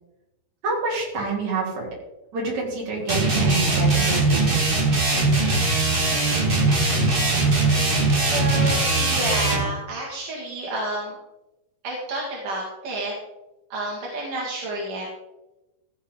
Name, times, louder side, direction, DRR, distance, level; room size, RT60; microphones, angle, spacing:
voice 1, 0.6-1.9 2.3-4.6, right 3 dB, 60° right, -3 dB, 4.3 m, -27 dB
sound 1, 3.1-9.7, right 2 dB, 30° right, 1.1 m, -20 dB
voice 2, 8.2-11.2 11.8-13.1 13.7-15.1, right 1 dB, 80° right, -4 dB, 3.5 m, -30 dB
15.0 x 7.8 x 3.8 m, 0.98 s
omnidirectional pair, 3.7 m